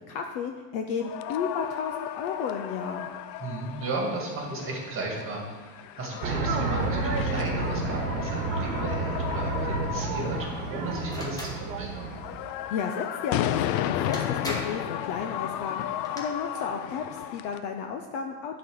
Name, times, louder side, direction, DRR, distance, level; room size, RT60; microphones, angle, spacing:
voice 1, 0.1-3.1 12.7-15.8 16.1-18.6, left 6 dB, 40° left, 4 dB, 0.4 m, -33 dB
sound 1, 1.0-17.6, left 12 dB, 90° left, 0.6 m, -34 dB
voice 2, 3.4-12.1, right 2 dB, 25° right, -1 dB, 1.9 m, -34 dB
sound 2, 6.2-12.5, right 3 dB, 60° right, 1.2 m, -30 dB
sound 3, 11.1-11.6 13.6-13.7 14.1-14.9 15.8-16.2, left 1 dB, 10° left, 0.9 m, -36 dB
9.3 x 4.1 x 6.1 m, 1.4 s
supercardioid pair, 155°, 50 cm